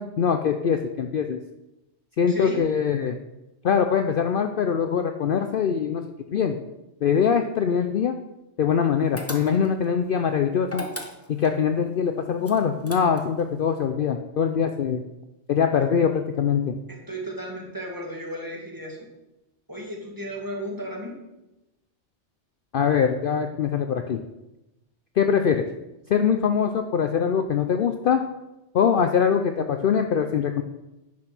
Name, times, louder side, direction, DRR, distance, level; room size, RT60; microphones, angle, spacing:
voice 1, 0.0-1.4 2.2-3.2 3.6-6.0 6.3-6.6 7.0-8.2 8.6-10.8 11.3-15.0 15.5-16.7 22.7-24.2 25.2-25.7 26.1-28.2 28.7-30.6, left 7 dB, 60° left, 7 dB, 0.7 m, -23 dB
voice 2, 2.3-2.6 16.9-19.1 19.7-21.2, equal, 15° right, -2 dB, 2.1 m, -34 dB
sound 1, 9.2-9.8 10.6-11.5 12.4-13.4, left 1 dB, 15° left, 1.0 m, -36 dB
9.9 x 6.0 x 6.0 m, 0.97 s
omnidirectional pair, 1.2 m